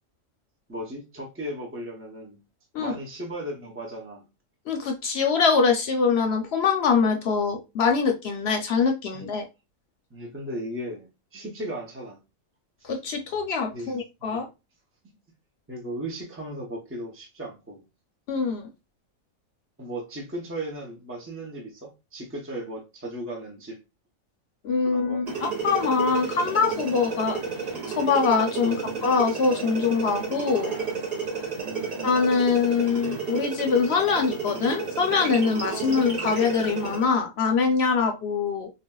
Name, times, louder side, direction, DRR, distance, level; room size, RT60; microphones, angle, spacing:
voice 1, 0.7-2.4 2.8-4.2 9.1-9.2 10.1-12.2 13.7-14.0 14.3-14.4 15.0-15.1 15.7-17.8 19.8-23.8 24.9-25.2 28.6-28.9 31.7-32.0 35.8-36.1, right 1 dB, 20° right, 0.3 m, -36 dB
voice 2, 4.7-9.4 12.8-14.5 18.3-18.7 24.6-27.4 27.9-30.7 32.0-38.7, left 5 dB, 65° left, 0.7 m, -24 dB
sound 1, 25.3-37.1, right 5 dB, 75° right, 2.4 m, -32 dB
4.1 x 2.1 x 2.2 m
omnidirectional pair, 1.4 m